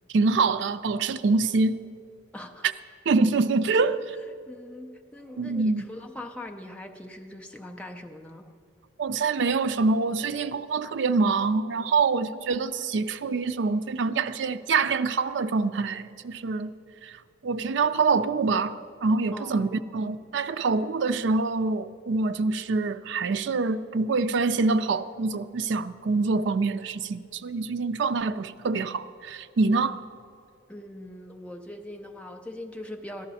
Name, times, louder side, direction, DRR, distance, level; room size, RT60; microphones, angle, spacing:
voice 1, 0.1-1.8 3.1-4.0 5.4-5.9 9.0-16.7 17.0-17.2 17.4-30.0, right 4 dB, 60° right, 0.4 m, -25 dB
voice 2, 2.3-2.7 3.7-3.9 4.5-8.5 19.3-19.9 30.7-33.3, left 1 dB, 5° left, 0.5 m, -41 dB
13.5 x 11.0 x 4.1 m
head